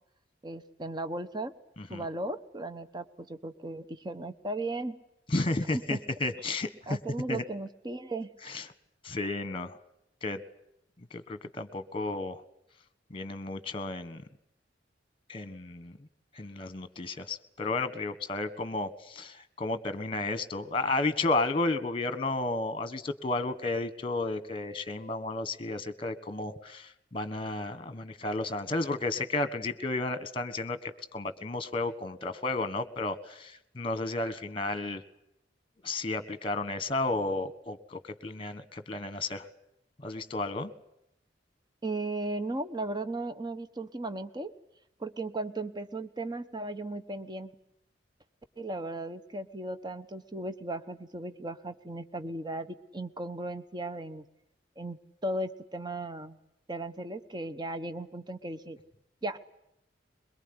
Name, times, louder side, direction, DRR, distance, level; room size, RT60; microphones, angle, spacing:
voice 1, 0.4-1.5 1.9-5.0 5.7-6.0 6.9-8.3 41.8-44.5 45.0-47.5 48.6-54.2 54.8-56.4 56.7-58.8 59.2-59.4, right 2 dB, 25° right, 10 dB, 1.1 m, -36 dB
voice 2, 5.3-7.0 7.3-7.4 8.4-8.7 9.0-9.8 10.2-10.4 11.1-12.4 13.1-14.2 15.3-16.0 16.3-35.0 35.8-39.5 40.0-40.7, left 2 dB, 30° left, 13 dB, 1.5 m, -32 dB
22.5 x 22.5 x 9.8 m, 0.80 s
head